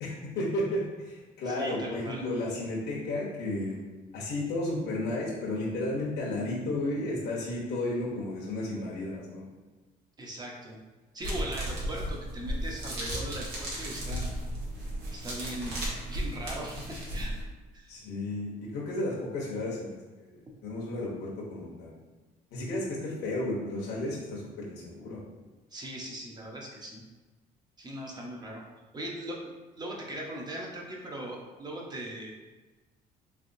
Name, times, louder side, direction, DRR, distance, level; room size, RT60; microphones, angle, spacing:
voice 1, 0.0-3.8 4.1-9.5 17.9-20.3 20.6-22.0 22.5-25.2, left 1 dB, 75° left, -5 dB, 1.0 m, -33 dB
voice 2, 1.5-2.2 10.2-10.8 11.1-14.3 15.1-15.8 16.1-17.3 17.7-17.9 25.7-27.0 27.8-28.6 28.9-32.3, right 1 dB, 25° right, -2 dB, 0.8 m, -39 dB
sound 1, 11.2-17.4, right 1 dB, 85° right, 1.3 m, -35 dB
3.6 x 3.4 x 2.7 m, 1.2 s
cardioid pair, 110°, 17 cm